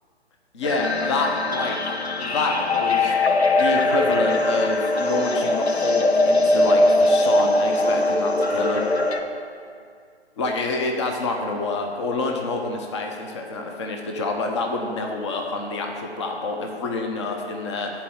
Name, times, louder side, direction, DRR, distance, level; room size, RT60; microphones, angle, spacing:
voice 1, 0.5-1.8 2.2-8.8 10.4-17.9, left 3 dB, 25° left, 2 dB, 0.7 m, -27 dB
sound 1, 0.6-9.2, left 2 dB, 75° left, 0.9 m, -21 dB
11.0 x 4.4 x 7.1 m, 2.2 s
figure-of-eight pair, 135°, 33 cm